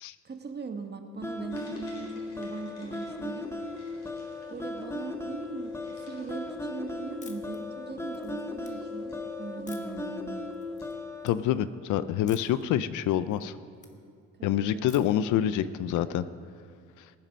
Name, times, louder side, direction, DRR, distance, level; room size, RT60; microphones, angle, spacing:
voice 1, 0.2-3.5 4.5-10.4 14.4-14.8, right 4 dB, 35° right, 6 dB, 1.2 m, -40 dB
sound 1, 1.2-11.3, left 2 dB, 10° left, 0.9 m, -37 dB
sound 2, 1.5-11.0, left 3 dB, 60° left, 4.2 m, -47 dB
sound 3, 7.2-7.6 8.0-8.7 9.7-10.1 10.5-10.9 11.2-11.3 12.3-12.6 13.0-13.9 14.9-15.3, left 3 dB, 25° left, 1.4 m, -51 dB
voice 2, 11.2-13.5 14.4-16.3, left 11 dB, 80° left, 15 dB, 0.5 m, -27 dB
20.0 x 7.4 x 5.2 m, 2.2 s
cardioid pair, 90°, 30 cm